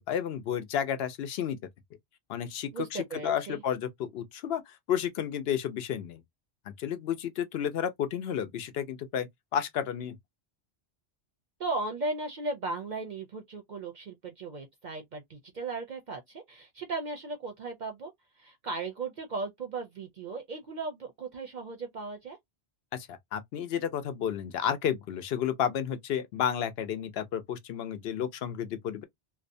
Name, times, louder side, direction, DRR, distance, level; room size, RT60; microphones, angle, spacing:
voice 1, 0.1-1.6 2.3-6.2 6.7-10.2 22.9-29.0, left 9 dB, 70° left, 0.8 m, -32 dB
voice 2, 2.7-3.6 11.6-18.1 18.4-22.4, right 3 dB, 55° right, 0.5 m, -36 dB
2.6 x 2.1 x 2.5 m
omnidirectional pair, 1.1 m